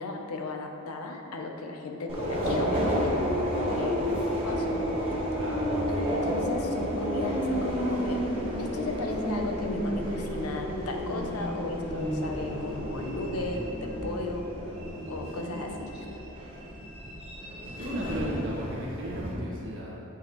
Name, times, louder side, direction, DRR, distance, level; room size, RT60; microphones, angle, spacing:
voice 1, 0.0-4.8 5.9-8.2 8.6-14.5 15.1-16.1, left 2 dB, 90° left, 3 dB, 0.7 m, -35 dB
Subway metro underground, 2.1-19.3, equal, 25° right, 1.4 m, -31 dB
voice 2, 5.4-5.7 17.7-20.0, equal, 60° right, -5 dB, 1.5 m, -35 dB
7.9 x 5.5 x 3.1 m, 3.0 s
head